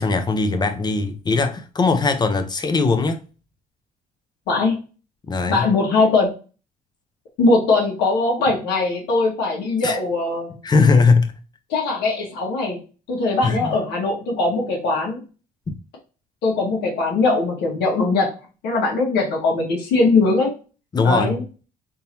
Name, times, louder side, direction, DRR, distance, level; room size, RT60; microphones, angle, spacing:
voice 1, 0.0-3.2 5.3-5.7 9.8-10.0 10.6-11.3 13.4-13.8 20.9-21.3, left 4 dB, 25° left, 0.6 m, -19 dB
voice 2, 4.5-4.8 5.5-6.3 7.4-10.6 11.7-12.8 13.1-15.2 16.4-18.3 18.6-20.5 21.0-21.4, left 3 dB, 80° left, 1.4 m, -20 dB
3.7 x 2.7 x 2.8 m
cardioid pair, 110°, 17 cm